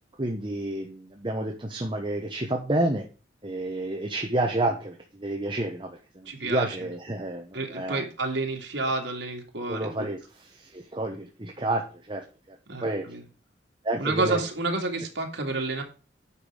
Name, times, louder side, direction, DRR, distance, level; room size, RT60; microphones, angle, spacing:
voice 1, 0.2-3.0 3.4-8.0 9.7-13.0 13.8-14.4, right 1 dB, 25° right, 2 dB, 1.0 m, -30 dB
voice 2, 6.3-6.9 7.5-10.1 12.7-13.2 14.0-15.8, right 3 dB, 80° right, 1 dB, 2.2 m, -30 dB
8.4 x 6.0 x 4.9 m, 0.35 s
head